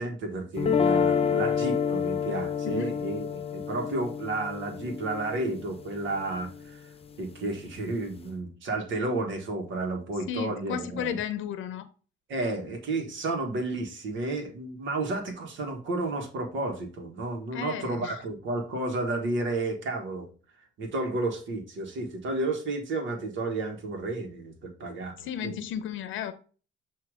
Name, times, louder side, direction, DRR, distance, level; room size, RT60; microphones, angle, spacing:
voice 1, 0.0-6.9 7.2-11.2 12.3-20.3 20.8-25.5, right 2 dB, 75° right, 1.5 m, -32 dB
sound 1, 0.6-6.7, left 7 dB, 30° left, 0.8 m, -28 dB
voice 2, 2.6-2.9 10.3-11.9 17.5-18.2 25.2-26.3, left 8 dB, 80° left, 0.7 m, -33 dB
7.7 x 2.8 x 4.9 m
cardioid pair, 90°, 20 cm